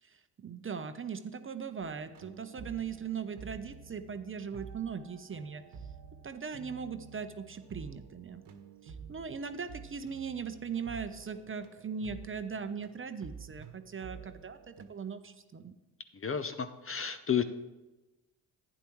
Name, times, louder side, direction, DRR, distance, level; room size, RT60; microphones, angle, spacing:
voice 1, 0.0-5.6 6.2-8.4 8.8-15.7, right 6 dB, 25° right, 9 dB, 0.7 m, -39 dB
sound 1, 1.8-14.9, right 6 dB, 60° right, 1.2 m, -50 dB
voice 2, 16.1-17.4, left 8 dB, 30° left, 10 dB, 0.7 m, -32 dB
11.5 x 9.1 x 3.1 m, 1.1 s
hypercardioid pair, 55°, 47 cm